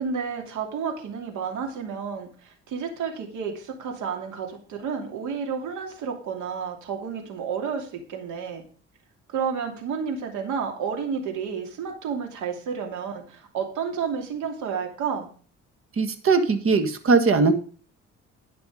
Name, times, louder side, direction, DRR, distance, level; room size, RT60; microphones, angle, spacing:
voice 1, 0.0-8.6 9.3-15.3, right 6 dB, 85° right, 2 dB, 2.8 m, -31 dB
voice 2, 16.0-17.5, right 4 dB, 50° right, 8 dB, 1.7 m, -20 dB
11.0 x 5.9 x 5.0 m, 0.42 s
cardioid pair, 90°, 29 cm